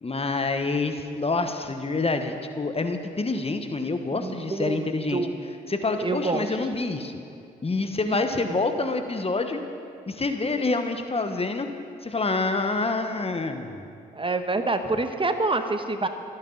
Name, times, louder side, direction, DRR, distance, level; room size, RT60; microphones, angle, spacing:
voice 1, 0.0-5.2 5.7-7.1 7.6-9.6 10.1-11.7 12.0-13.9, left 3 dB, 30° left, 7 dB, 1.3 m, -27 dB
voice 2, 4.1-5.3 6.0-6.6 8.0-8.6 14.1-16.1, right 3 dB, 25° right, 7 dB, 1.3 m, -27 dB
27.0 x 10.0 x 4.0 m, 2.5 s
hypercardioid pair, 40°, 19 cm